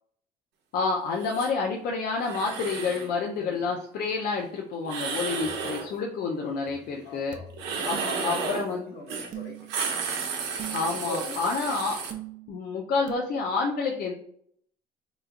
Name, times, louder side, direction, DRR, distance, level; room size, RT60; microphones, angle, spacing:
voice 1, 0.7-7.4 7.9-8.0 8.2-8.9 10.7-12.0 12.5-14.1, left 4 dB, 65° left, 0 dB, 0.6 m, -29 dB
sound 1, 1.2-1.5 2.2-3.1 4.8-5.9 7.5-8.7 9.1-9.3 9.6-12.1, right 5 dB, 85° right, 0.8 m, -32 dB
voice 2, 3.4-3.7 7.0-7.5 7.8-10.0 10.9-11.4, left 2 dB, 80° left, -1 dB, 1.4 m, -40 dB
sound 2, 5.4-5.9 6.7-8.5 9.3-9.9 10.6-11.2 12.1-12.7 13.1-13.2, right 10 dB, 50° right, 0.6 m, -42 dB
3.5 x 3.0 x 2.5 m, 0.65 s
cardioid pair, 110°, 17 cm